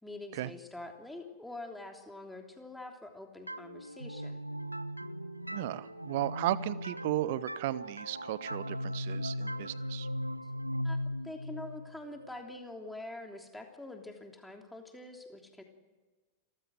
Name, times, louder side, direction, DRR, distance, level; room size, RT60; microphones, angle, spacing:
voice 1, 0.0-4.4 10.8-11.0 11.2-15.6, left 2 dB, 5° left, 3 dB, 3.2 m, -45 dB
sound 1, 3.5-13.0, equal, 85° right, 0.7 m, -39 dB
voice 2, 5.4-10.1, right 15 dB, 50° right, 20 dB, 0.8 m, -35 dB
28.0 x 14.5 x 7.7 m, 1.3 s
figure-of-eight pair, 90°, 0 cm